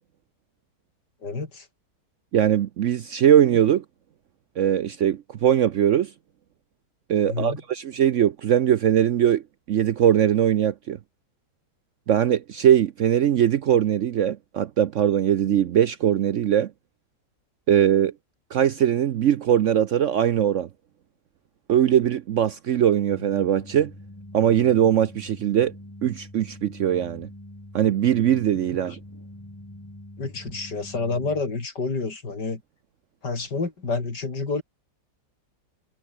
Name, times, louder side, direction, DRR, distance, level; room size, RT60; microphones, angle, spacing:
voice 1, 1.2-1.7 7.2-7.6 30.2-32.6 33.2-34.6, left 3 dB, 80° left, 4.5 m, -29 dB
voice 2, 2.3-3.8 4.6-6.1 7.1-9.4 9.7-11.0 12.1-16.7 17.7-18.1 18.5-20.7 21.7-23.9 24.3-25.7 26.0-27.3 27.7-29.0, right 10 dB, 60° right, 0.8 m, -21 dB
sound 1, 23.1-31.4, left 1 dB, 10° left, 2.6 m, -44 dB
omnidirectional pair, 1.8 m